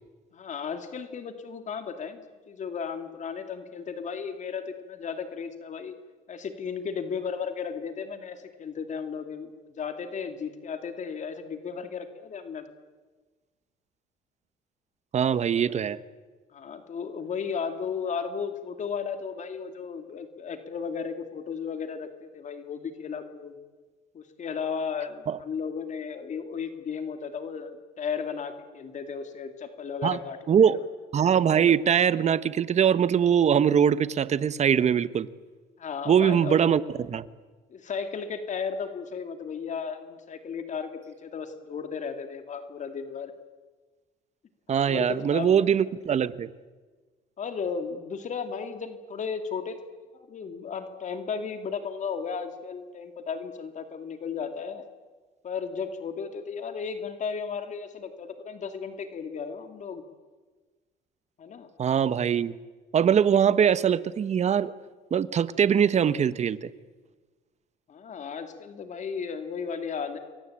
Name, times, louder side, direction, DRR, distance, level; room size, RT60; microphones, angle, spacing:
voice 1, 0.3-5.9 6.3-12.6 15.6-15.8 16.5-23.6 24.1-30.7 35.8-36.6 37.7-43.3 44.9-45.7 47.4-49.8 50.1-54.9 55.4-60.0 61.4-61.7 67.9-70.2, left 6 dB, 45° left, 7 dB, 2.8 m, -35 dB
voice 2, 15.1-16.0 25.3-25.4 30.0-30.2 30.5-30.8 31.1-35.3 36.1-37.3 44.7-46.5 61.8-62.5 62.9-64.7 65.1-66.7, right 8 dB, 40° right, 15 dB, 1.2 m, -22 dB
29.0 x 23.0 x 8.9 m, 1.3 s
cardioid pair, 110°, 17 cm